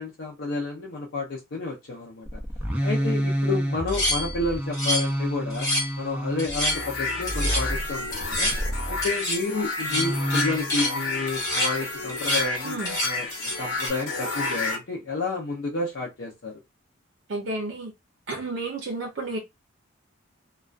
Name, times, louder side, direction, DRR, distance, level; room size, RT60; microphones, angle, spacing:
voice 1, 0.0-2.4 2.8-5.7 6.0-8.5 8.9-13.3 13.6-16.6, left 3 dB, 60° left, 0.5 m, -30 dB
sound 1, 2.3-9.1 9.9-10.9 12.2-12.4, equal, 5° right, 0.4 m, -29 dB
sound 2, 3.9-5.2 5.5-6.0 6.4-6.8 7.3-7.7 8.1-8.6 9.0-9.4 9.8-11.0 11.3-11.7 12.1-12.5 12.8-13.9, left 1 dB, 15° left, 0.8 m, -28 dB
sound 3, 6.7-14.8, left 3 dB, 85° left, 0.9 m, -31 dB
voice 2, 12.6-12.9 17.3-17.9 18.3-19.4, right 2 dB, 65° right, 0.6 m, -31 dB
2.3 x 2.2 x 2.4 m
head